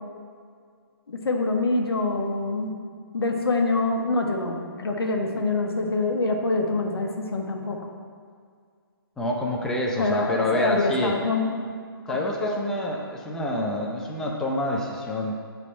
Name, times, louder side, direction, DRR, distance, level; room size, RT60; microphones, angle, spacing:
voice 1, 1.1-2.7 3.1-7.8 10.0-11.7 12.1-12.8, left 2 dB, 80° left, 2 dB, 0.9 m, -25 dB
voice 2, 9.2-11.2 12.1-15.3, left 1 dB, 5° left, -1 dB, 0.4 m, -27 dB
7.3 x 3.4 x 4.2 m, 2.1 s
hypercardioid pair, 150°, 13 cm